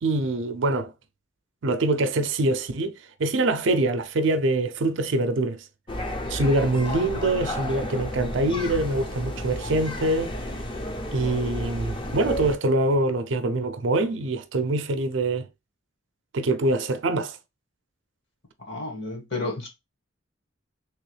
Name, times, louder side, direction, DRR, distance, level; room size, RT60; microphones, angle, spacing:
voice 1, 0.0-0.9 1.6-5.6 6.3-10.3 11.1-15.5 16.3-17.4, right 2 dB, 65° right, 0.5 m, -24 dB
sound 1, 5.9-12.6, equal, 25° left, 0.6 m, -32 dB
voice 2, 18.7-19.7, left 2 dB, 60° left, 1.5 m, -31 dB
3.4 x 3.1 x 3.2 m
head